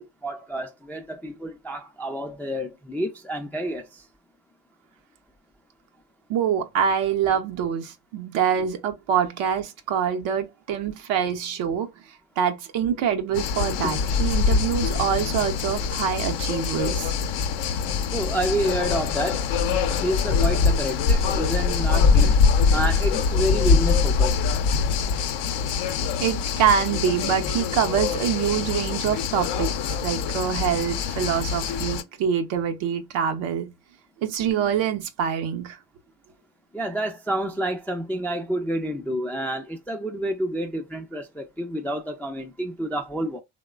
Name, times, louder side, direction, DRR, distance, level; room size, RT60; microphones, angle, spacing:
voice 1, 0.0-4.0 13.8-13.9 18.1-19.5 20.0-22.4 22.7-24.4 36.7-43.4, right 1 dB, 5° left, 0.4 m, -29 dB
voice 2, 6.3-11.9 12.4-17.1 26.2-29.7 30.0-33.7 34.2-35.8, right 8 dB, 70° right, 0.7 m, -25 dB
sound 1, 13.3-32.0, left 5 dB, 60° left, 0.6 m, -23 dB
3.0 x 2.1 x 2.3 m
supercardioid pair, 65°, 48 cm